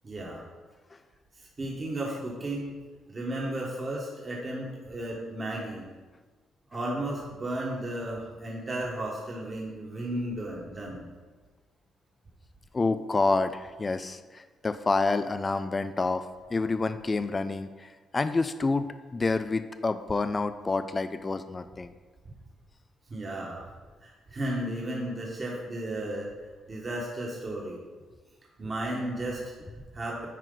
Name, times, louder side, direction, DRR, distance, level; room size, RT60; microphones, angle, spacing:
voice 1, 0.0-0.4 1.3-2.8 3.1-5.9 6.7-11.0 23.1-23.6 24.0-26.3 26.7-27.8 28.6-30.3, right 1 dB, 35° right, -3 dB, 1.5 m, -34 dB
voice 2, 12.7-16.3 16.5-21.9, left 3 dB, 25° left, 10 dB, 0.3 m, -28 dB
9.0 x 4.7 x 3.9 m, 1.3 s
cardioid pair, 90°, 0 cm